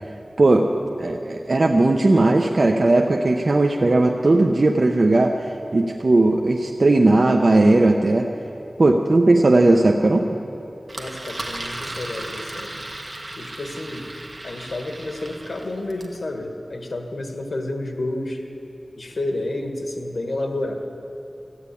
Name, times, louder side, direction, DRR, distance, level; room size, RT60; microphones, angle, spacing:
voice 1, 0.4-8.3 8.8-10.3, right 2 dB, 60° right, 2 dB, 0.7 m, -17 dB
Engine, 10.9-16.2, right 1 dB, 45° right, 1.5 m, -35 dB
voice 2, 11.0-12.7 13.4-14.1 14.4-18.4 19.0-20.7, left 2 dB, 75° left, 3 dB, 1.5 m, -30 dB
14.5 x 9.5 x 8.5 m, 2.8 s
wide cardioid pair, 70°, 0 cm